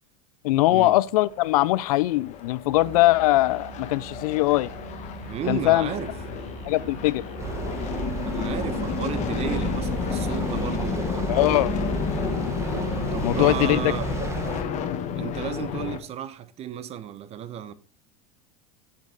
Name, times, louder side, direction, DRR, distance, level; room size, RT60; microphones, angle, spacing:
voice 1, 0.4-4.7 5.5-5.9 6.7-7.2 11.3-11.7 13.2-13.8, left 18 dB, 80° left, 0.5 m, -21 dB
sound 1, 1.2-16.0, left 8 dB, 40° left, 1.2 m, -31 dB
Musical instrument, 2.7-14.4, right 13 dB, 60° right, 1.1 m, -44 dB
voice 2, 5.3-6.1 8.3-11.7 13.1-14.1 15.2-17.7, right 9 dB, 35° right, 0.8 m, -33 dB
sound 2, 7.4-14.6, right 4 dB, 15° right, 1.5 m, -32 dB
7.5 x 7.3 x 3.9 m
supercardioid pair, 125°, 19 cm